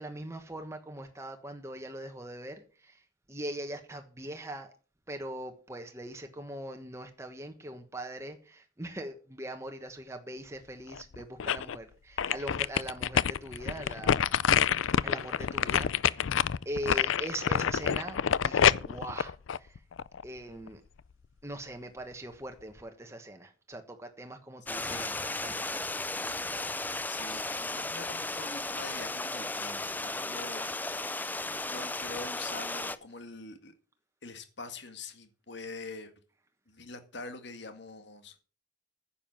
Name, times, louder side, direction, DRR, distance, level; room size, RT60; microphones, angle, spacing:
voice 1, 0.0-3.0 3.3-4.7 5.1-14.3 15.0-16.3 16.6-19.8 20.2-20.8 21.4-26.1, right 1 dB, 15° right, 1.3 m, -41 dB
sound 1, 10.9-11.8 12.2-20.2 20.7-20.8, left 8 dB, 75° left, 0.5 m, -27 dB
voice 2, 15.5-15.8 24.8-25.2 27.1-31.3 31.6-33.7 34.2-36.1 36.7-38.4, left 3 dB, 60° left, 1.9 m, -45 dB
Stream, 24.7-33.0, left 2 dB, 10° left, 0.5 m, -35 dB
10.0 x 7.4 x 7.3 m
head